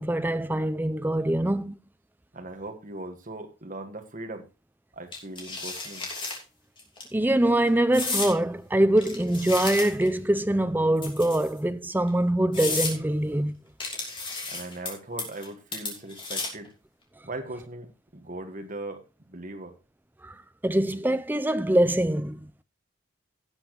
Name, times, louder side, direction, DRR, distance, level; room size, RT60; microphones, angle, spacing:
voice 1, 0.0-1.8 7.1-13.6 20.2-20.3 20.6-22.6, right 1 dB, 10° right, 0.5 m, -24 dB
voice 2, 2.3-4.5 4.9-6.1 14.5-16.7 17.2-19.7, right 2 dB, 40° right, 1.6 m, -39 dB
sound 1, 5.1-6.4 6.8-7.0 7.9-8.3 9.0-10.1 11.0-11.6 12.1-12.2 12.5-12.9 13.8-14.9 15.2-15.5 15.7-16.7, left 3 dB, 25° left, 2.9 m, -32 dB
17.0 x 7.2 x 3.0 m
head